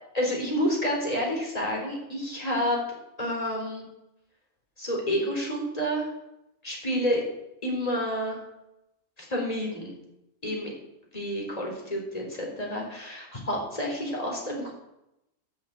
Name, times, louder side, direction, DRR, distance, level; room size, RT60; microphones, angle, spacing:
voice 1, 0.1-2.8 3.2-3.8 4.8-6.1 6.6-7.2 7.6-8.4 9.2-9.9 10.4-10.7 11.1-14.7, equal, 30° left, -1 dB, 4.2 m, -29 dB
12.5 x 7.3 x 8.8 m, 0.88 s
omnidirectional pair, 1.4 m